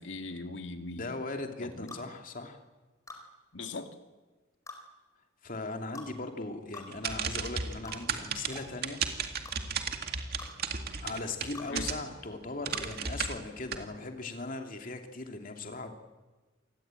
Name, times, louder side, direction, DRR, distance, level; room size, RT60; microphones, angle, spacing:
voice 1, 0.0-1.1 1.6-1.9 3.5-3.9 11.7-11.9, left 2 dB, 65° left, 6 dB, 2.2 m, -40 dB
voice 2, 0.9-2.6 5.4-9.4 11.0-16.0, left 3 dB, 45° left, 4 dB, 2.7 m, -39 dB
sound 1, 1.9-2.1 3.1-3.2 4.7-4.8 5.9-6.1 6.7-6.9 7.8-8.0 8.5-8.7 9.4-9.6 10.4-10.5 11.5-11.7 12.7-12.9, left 3 dB, 15° left, 4.3 m, -45 dB
sound 2, 6.9-12.2 12.6-13.8, right 6 dB, 50° right, 2.2 m, -34 dB
27.0 x 20.0 x 9.0 m, 1.2 s
head